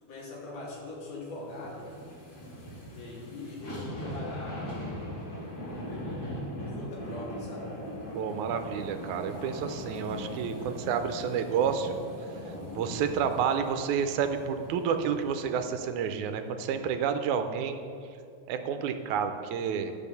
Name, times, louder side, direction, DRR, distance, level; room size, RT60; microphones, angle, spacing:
voice 1, 0.0-2.0 2.9-4.7 6.6-7.7, left 2 dB, 60° left, -5 dB, 3.3 m, -41 dB
sound 1, 1.3-15.8 16.2-16.3, left 1 dB, 40° left, 3.0 m, -40 dB
voice 2, 8.1-11.9 12.7-17.8 18.5-19.9, right 7 dB, 85° right, 8 dB, 2.1 m, -30 dB
12.0 x 6.2 x 6.9 m, 2.4 s
omnidirectional pair, 3.4 m